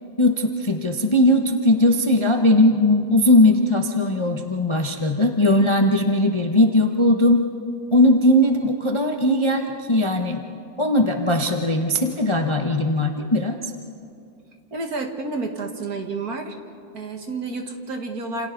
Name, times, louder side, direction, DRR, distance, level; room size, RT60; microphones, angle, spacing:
voice 1, 0.2-7.4 7.9-10.4 10.8-13.6, left 1 dB, 20° left, 3 dB, 0.8 m, -19 dB
voice 2, 14.7-16.5 16.9-18.5, right 3 dB, 50° right, 4 dB, 2.1 m, -30 dB
29.5 x 28.0 x 4.0 m, 2.5 s
omnidirectional pair, 2.1 m